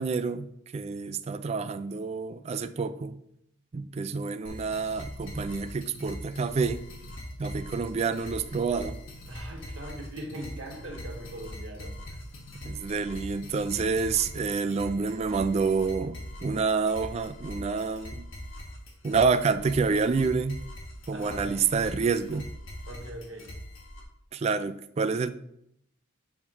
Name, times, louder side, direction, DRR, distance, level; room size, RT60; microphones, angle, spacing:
voice 1, 0.0-3.2 3.7-6.8 7.4-9.0 12.6-18.3 19.0-20.6 21.1-22.5 24.3-25.3, right 5 dB, 30° right, 12 dB, 0.3 m, -28 dB
sound 1, 4.4-24.0, left 1 dB, 70° left, 1.6 m, -42 dB
voice 2, 9.3-12.2 21.1-21.6 22.9-23.5, right 1 dB, 65° right, 1 dB, 1.5 m, -41 dB
8.7 x 3.0 x 4.8 m, 0.75 s
head